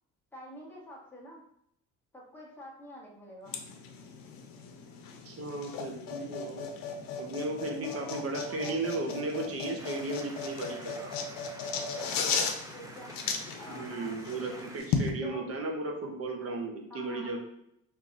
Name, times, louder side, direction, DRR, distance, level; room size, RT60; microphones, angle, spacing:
voice 1, 0.3-1.4 2.1-3.6 7.7-8.8 12.7-14.6 15.2-15.6 16.9-17.4, equal, 5° left, -4 dB, 1.1 m, -47 dB
sound 1, 3.5-15.1, left 5 dB, 85° left, 0.6 m, -36 dB
voice 2, 5.2-6.7 7.2-11.1 13.7-17.4, right 2 dB, 45° right, 2 dB, 0.9 m, -35 dB
sound 2, 9.8-14.8, right 2 dB, 10° right, 0.4 m, -48 dB
3.8 x 2.8 x 2.4 m, 0.74 s
cardioid pair, 95°, 33 cm